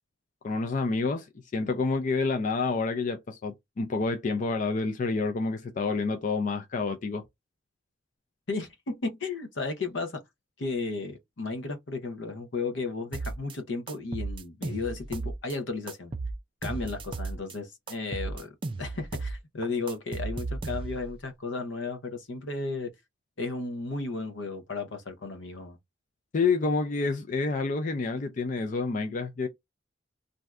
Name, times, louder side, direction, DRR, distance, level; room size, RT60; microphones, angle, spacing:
voice 1, 0.4-1.3 1.5-7.2 26.3-29.5, left 4 dB, 40° left, 0.4 m, -28 dB
voice 2, 8.5-10.2 10.6-16.1 16.6-18.5 18.8-22.9 23.4-25.8, left 3 dB, 75° left, 0.7 m, -34 dB
sound 1, 13.1-13.5 13.9-15.5 15.9-17.5 17.9-19.4 19.6-21.1, right 3 dB, 25° right, 0.4 m, -35 dB
2.6 x 2.3 x 3.2 m
head